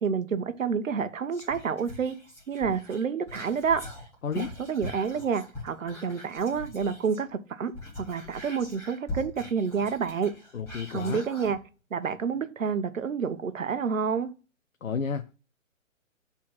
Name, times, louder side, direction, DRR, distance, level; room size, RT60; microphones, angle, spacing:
voice 1, 0.0-2.2 2.5-3.8 4.4-10.3 10.9-11.6 11.9-14.3, right 6 dB, 70° right, 1.2 m, -29 dB
Whispering, 1.3-7.3 7.6-11.6 12.0-12.1, left 1 dB, 5° left, 2.9 m, -42 dB
voice 2, 10.5-11.2 14.8-15.3, left 6 dB, 75° left, 0.9 m, -31 dB
6.1 x 4.3 x 5.5 m
hypercardioid pair, 145°, 40 cm